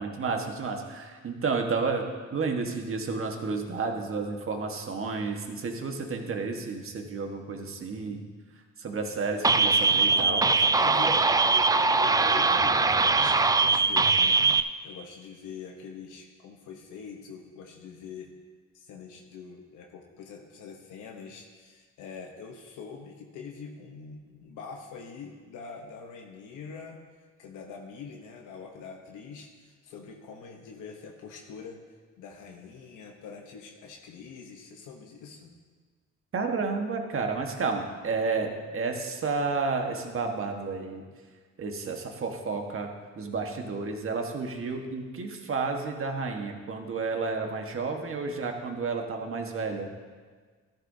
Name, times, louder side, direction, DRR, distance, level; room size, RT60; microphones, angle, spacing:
voice 1, 0.0-2.0 2.3-8.2 8.8-10.5 36.3-41.0 41.6-42.9 43.1-49.9, right 4 dB, 45° right, 3 dB, 1.5 m, -31 dB
sound 1, 9.4-14.6, right 4 dB, 15° right, 0.3 m, -22 dB
voice 2, 10.0-14.4 14.8-18.3 18.7-27.0 27.4-31.8 32.2-35.5, left 5 dB, 90° left, 1 dB, 1.0 m, -44 dB
13.5 x 11.5 x 2.8 m, 1.5 s
cardioid pair, 90°, 30 cm